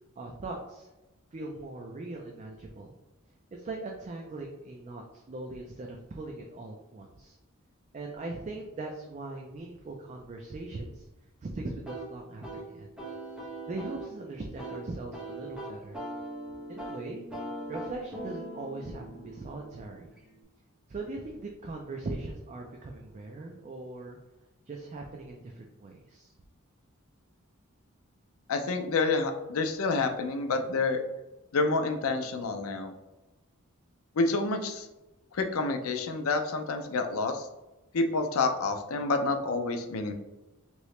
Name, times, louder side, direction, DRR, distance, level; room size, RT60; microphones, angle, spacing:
voice 1, 0.2-0.9 1.3-2.9 3.5-7.4 7.9-11.0 11.4-12.9 13.7-16.0 16.7-17.3 17.7-20.1 20.9-24.2 24.7-26.3, right 2 dB, 35° right, 1 dB, 0.4 m, -40 dB
sound 1, 11.8-20.4, right 1 dB, 5° right, 0.8 m, -41 dB
voice 2, 28.5-31.0 31.5-32.9 34.2-34.9 35.3-37.5 37.9-40.1, left 3 dB, 70° left, 6 dB, 0.5 m, -28 dB
3.0 x 2.8 x 3.1 m, 1.0 s
head